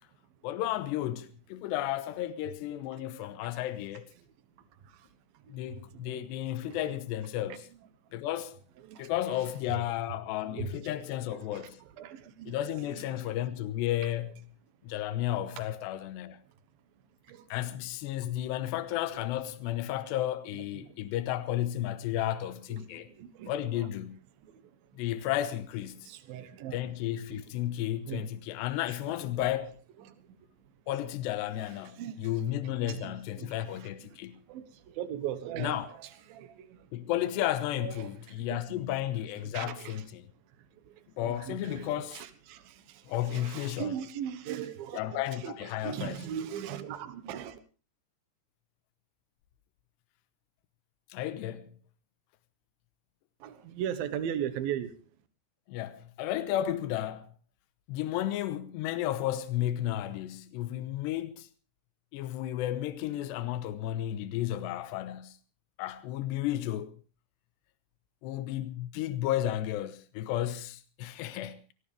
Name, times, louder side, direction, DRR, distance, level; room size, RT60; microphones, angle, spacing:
voice 1, 0.4-4.1 5.5-7.6 8.1-8.6 9.0-11.8 12.5-14.3 14.8-16.4 17.5-23.1 23.5-24.2 25.0-26.1 26.7-29.7 30.9-34.4 35.6-35.9 36.9-40.2 41.2-42.2 43.1-44.0 44.9-46.2 51.1-51.7 55.7-57.3 57.9-61.5 62.1-65.4 65.8-66.9 68.2-71.6, left 13 dB, 80° left, 3.1 m, -33 dB
voice 2, 3.0-3.5 4.2-5.1 5.3-7.0 7.5-7.6 8.1-8.2 8.8-9.9 10.4-10.9 11.3-13.4 14.8-15.0 15.6-15.7 17.2-17.5 18.2-18.5 20.6-21.0 22.3-22.4 22.7-24.0 24.4-25.0 25.9-26.9 27.3-27.8 28.1-28.3 29.0-29.6 30.0-30.7 31.7-37.1 37.8-38.8 39.4-40.0 40.5-47.6 53.4-55.0, right 9 dB, 65° right, 2.8 m, -41 dB
21.5 x 18.0 x 3.4 m
omnidirectional pair, 5.0 m